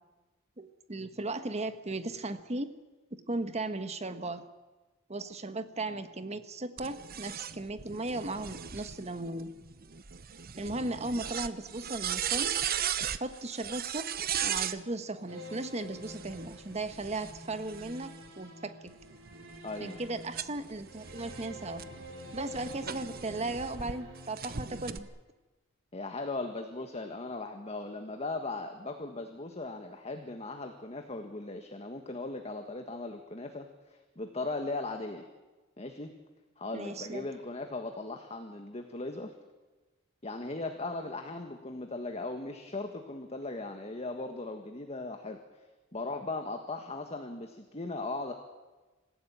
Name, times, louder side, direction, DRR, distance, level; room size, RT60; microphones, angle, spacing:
voice 1, 0.6-2.7 3.3-4.4 5.1-9.5 10.6-12.6 13.2-14.1 14.4-18.9 19.8-21.9 22.3-25.1 36.7-37.3, right 2 dB, 35° right, 10 dB, 1.4 m, -36 dB
sound 1, 6.8-14.8 15.9-18.3 18.9-23.9 24.4-25.0, right 9 dB, 50° right, 0.9 m, -37 dB
sound 2, 15.3-25.1, left 1 dB, 75° right, 5.2 m, -48 dB
voice 2, 19.6-20.0 25.9-35.3 35.8-36.1 36.6-39.3 40.2-45.4 45.9-48.3, left 2 dB, 30° left, 5 dB, 1.7 m, -38 dB
26.5 x 15.5 x 8.8 m, 1.2 s
head